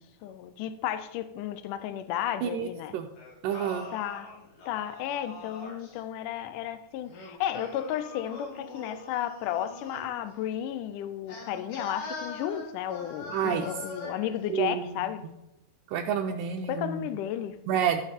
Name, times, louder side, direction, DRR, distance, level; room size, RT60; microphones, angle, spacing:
voice 1, 0.2-3.0 3.9-4.3 4.7-15.2 16.7-17.6, left 11 dB, 80° left, 11 dB, 1.9 m, -33 dB
voice 2, 2.4-3.1 3.4-3.9 13.3-13.7 14.5-15.1 15.9-17.1 17.7-18.0, right 8 dB, 85° right, 3 dB, 1.9 m, -29 dB
Singing, 3.2-6.0 7.0-10.2 11.3-14.4, left 2 dB, 55° left, 4.0 m, -42 dB
15.5 x 6.2 x 4.2 m, 0.92 s
omnidirectional pair, 4.7 m